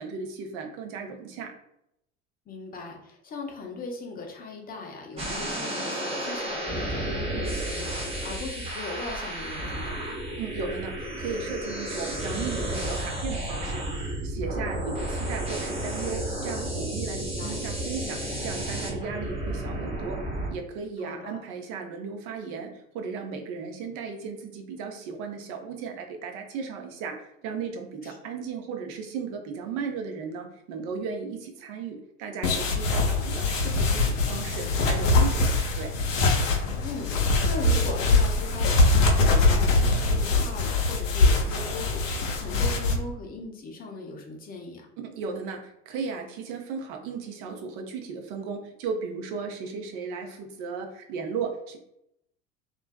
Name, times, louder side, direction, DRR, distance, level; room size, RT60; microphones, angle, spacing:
voice 1, 0.0-1.5 10.4-17.2 17.4-20.2 20.5-35.9 45.0-51.8, right 5 dB, 50° right, 3 dB, 0.6 m, -35 dB
voice 2, 2.5-10.2 17.1-17.5 21.0-21.4 28.0-28.2 32.8-33.2 36.8-44.9, left 3 dB, 25° left, 1 dB, 0.6 m, -39 dB
sound 1, 5.2-20.5, right 1 dB, 15° right, 0.7 m, -32 dB
sound 2, 32.4-42.9, left 2 dB, 80° left, 0.6 m, -23 dB
2.5 x 2.2 x 2.2 m, 0.79 s
figure-of-eight pair, 70°, 38 cm